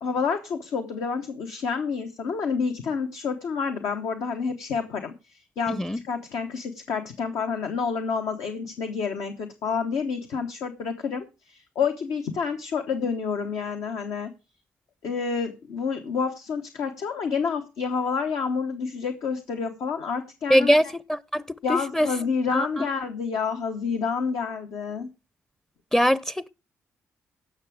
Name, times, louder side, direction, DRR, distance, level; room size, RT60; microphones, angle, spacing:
voice 1, 0.0-14.3 15.0-20.8 21.6-25.1, left 5 dB, 80° left, 1.0 m, -29 dB
voice 2, 5.7-6.0 20.5-21.4 21.7-22.1 22.5-22.9 25.9-26.5, equal, 10° left, 0.5 m, -22 dB
17.0 x 6.1 x 4.8 m
supercardioid pair, 60°, 6 cm